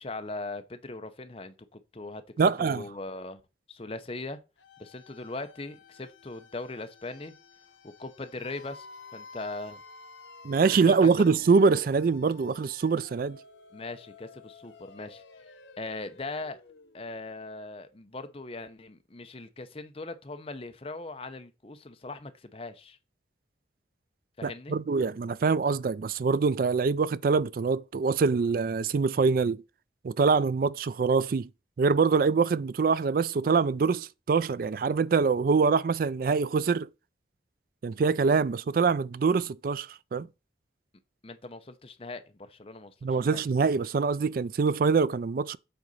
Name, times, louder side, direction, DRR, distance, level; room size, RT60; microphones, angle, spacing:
voice 1, 0.0-3.4 3.7-4.4 4.8-7.3 7.8-8.9 9.1-9.8 10.9-11.1 13.7-15.2 15.8-16.6 16.9-23.0 24.4-24.7 41.2-43.4, left 2 dB, 30° left, 0.8 m, -40 dB
voice 2, 2.4-2.8 10.4-13.4 24.4-29.6 30.0-31.5 31.8-36.9 37.8-40.3 43.0-45.6, right 5 dB, 50° right, 0.3 m, -24 dB
sound 1, 4.6-17.4, left 4 dB, 90° left, 1.0 m, -51 dB
7.9 x 4.0 x 5.5 m
head